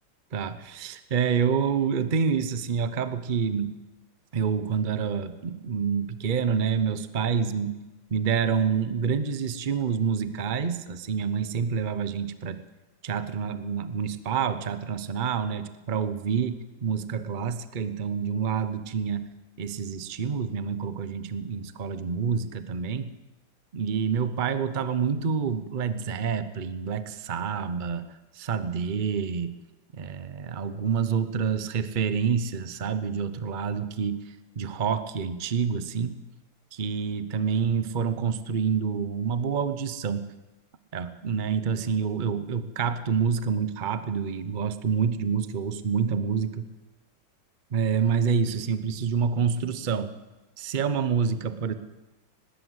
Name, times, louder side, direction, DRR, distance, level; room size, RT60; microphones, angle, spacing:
voice 1, 0.3-3.7 4.3-7.8 8.1-12.6 13.0-19.3 19.6-23.1 23.7-28.1 28.3-29.5 29.9-34.2 34.6-36.1 36.7-40.2 40.9-46.6 47.7-50.1 50.6-51.7, right 6 dB, 80° right, 12 dB, 0.4 m, -27 dB
19.5 x 17.0 x 7.9 m, 1.1 s
omnidirectional pair, 2.3 m